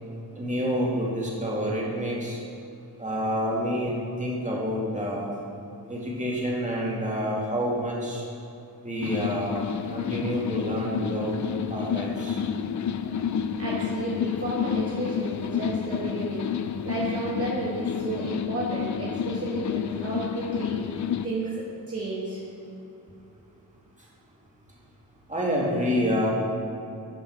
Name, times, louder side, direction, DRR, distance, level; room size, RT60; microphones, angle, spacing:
voice 1, 0.3-2.4 3.0-5.3 5.9-8.2 8.8-9.6 9.9-11.4 11.7-12.4 13.0-13.2 25.3-26.3, equal, 20° right, -4 dB, 2.2 m, -28 dB
sound 1, 9.0-21.3, left 8 dB, 45° left, 0.4 m, -30 dB
voice 2, 13.6-16.5 16.8-22.4, right 2 dB, 35° right, -6 dB, 1.6 m, -32 dB
12.0 x 5.5 x 4.7 m, 2.7 s
cardioid pair, 85°, 41 cm